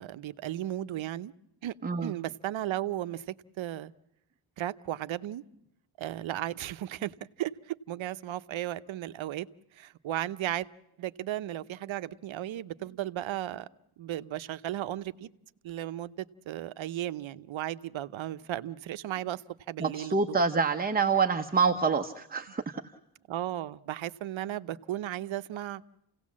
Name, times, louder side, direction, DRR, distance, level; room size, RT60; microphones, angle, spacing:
voice 1, 0.0-1.3 1.6-1.7 2.0-3.9 4.6-5.4 6.0-9.5 9.7-10.7 11.0-13.7 14.0-15.3 15.6-19.4 19.7-20.4 23.3-25.8, right 13 dB, 70° right, 13 dB, 0.8 m, -35 dB
voice 2, 19.8-22.8, right 5 dB, 20° right, 6 dB, 0.8 m, -27 dB
29.0 x 17.5 x 7.4 m, 0.87 s
wide cardioid pair, 140°, 49 cm